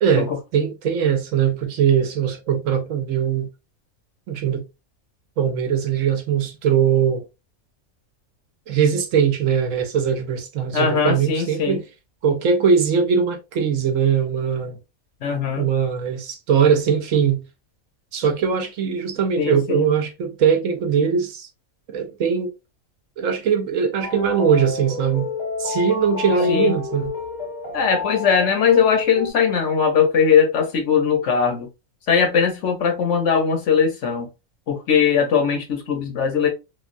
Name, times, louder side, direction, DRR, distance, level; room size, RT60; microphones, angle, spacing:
voice 1, 0.0-3.5 4.3-4.6 5.4-7.2 8.7-11.8 12.2-14.8 15.6-17.4 18.1-21.5 21.9-22.5 23.2-25.3 25.6-27.1, right 7 dB, 70° right, 0.9 m, -21 dB
voice 2, 10.7-11.8 15.2-15.7 19.4-19.9 26.5-26.7 27.7-31.7 32.1-34.3 34.7-36.5, left 6 dB, 65° left, 1.0 m, -20 dB
sound 1, 24.0-29.3, left 4 dB, 40° left, 0.7 m, -30 dB
3.2 x 2.2 x 2.4 m
omnidirectional pair, 1.5 m